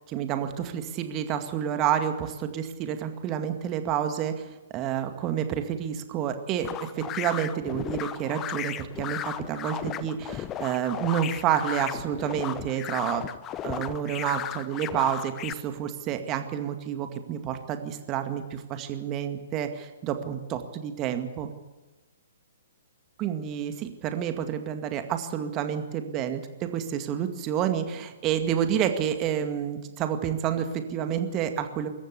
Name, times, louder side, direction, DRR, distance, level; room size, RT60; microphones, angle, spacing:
voice 1, 0.1-13.2 13.6-21.5 23.2-31.9, right 9 dB, 25° right, 7 dB, 2.1 m, -29 dB
sound 1, 6.6-15.5, left 10 dB, 20° left, 1.0 m, -35 dB
25.0 x 14.0 x 8.4 m, 1.2 s
figure-of-eight pair, 120°, 0 cm